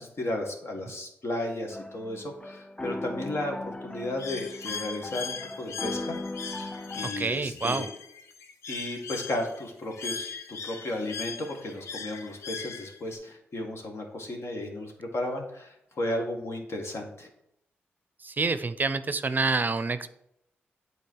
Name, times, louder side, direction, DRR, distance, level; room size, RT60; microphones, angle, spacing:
voice 1, 0.0-6.2 6.9-7.9 8.7-17.3, left 1 dB, 60° left, 2 dB, 1.8 m, -34 dB
sound 1, 1.7-7.1, left 2 dB, 15° left, 0.5 m, -38 dB
Bird, 4.2-13.2, left 5 dB, 75° left, 0.7 m, -39 dB
voice 2, 7.2-7.9 18.2-20.1, right 3 dB, 40° right, 12 dB, 0.5 m, -27 dB
8.5 x 4.1 x 4.7 m, 0.78 s
supercardioid pair, 45°, 5 cm